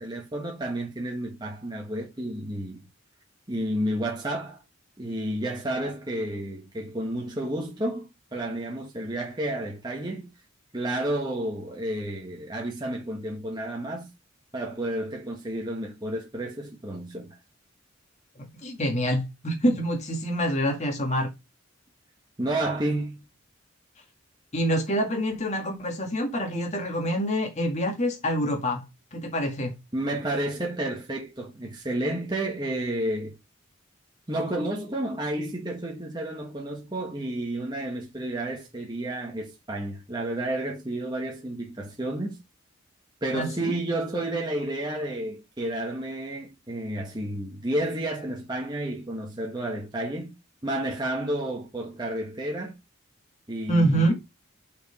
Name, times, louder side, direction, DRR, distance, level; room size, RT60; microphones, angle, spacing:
voice 1, 0.0-2.8 3.5-4.6 5.0-10.3 10.7-14.1 14.5-17.4 22.4-23.3 29.9-33.3 34.3-42.4 43.2-50.4 50.6-52.8 53.5-54.1, right 1 dB, 20° right, 1.4 m, -31 dB
voice 2, 18.4-21.3 24.5-28.8 29.1-29.7 43.3-43.7 53.7-54.1, equal, 35° left, 2.1 m, -26 dB
6.3 x 5.1 x 5.3 m
head